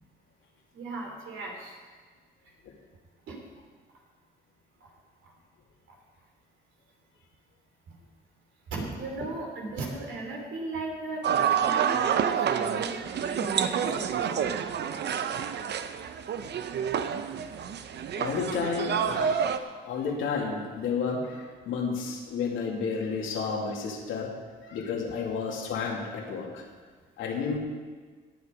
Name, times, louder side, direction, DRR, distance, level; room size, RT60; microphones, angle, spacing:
voice 1, 0.7-1.7 3.3-3.4 7.9-8.0 8.7-14.4, right 2 dB, 75° right, 0 dB, 3.4 m, -37 dB
sound 1, 11.2-19.6, right 8 dB, 60° right, 0.8 m, -28 dB
voice 2, 18.2-24.3 24.7-26.7 27.2-27.6, left 5 dB, 85° left, -1 dB, 2.6 m, -31 dB
18.0 x 8.4 x 5.1 m, 1.5 s
cardioid pair, 90°, 20 cm